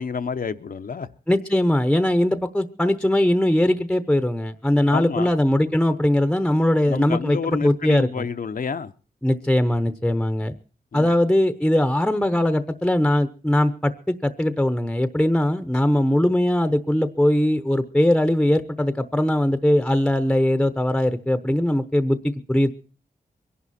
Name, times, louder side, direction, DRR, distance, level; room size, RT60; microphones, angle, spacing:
voice 1, 0.0-1.1 4.9-5.3 6.9-8.9 10.9-11.1, left 5 dB, 65° left, 9 dB, 0.8 m, -29 dB
voice 2, 1.3-8.3 9.2-10.5 10.9-22.7, left 1 dB, 5° left, 11 dB, 0.8 m, -20 dB
23.0 x 11.0 x 4.2 m, 0.37 s
wide cardioid pair, 100°, 16 cm